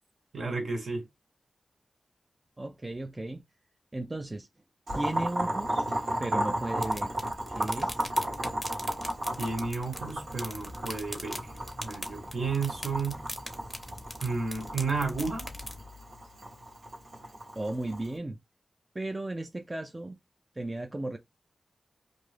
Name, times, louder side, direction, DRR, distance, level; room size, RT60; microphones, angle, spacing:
voice 1, 0.3-1.0 9.4-11.5 11.8-13.2 14.2-15.5, right 4 dB, 65° right, 1.1 m, -32 dB
voice 2, 2.6-3.4 3.9-4.5 4.9-5.8 6.2-7.1 7.5-8.0 17.6-18.4 18.9-20.2 20.6-21.2, right 2 dB, 20° right, 0.3 m, -35 dB
Boiling, 4.9-18.1, equal, 85° right, 1.2 m, -34 dB
sound 1, 6.8-15.8, left 1 dB, 5° left, 0.7 m, -42 dB
2.6 x 2.4 x 3.2 m
wide cardioid pair, 105°, 0 cm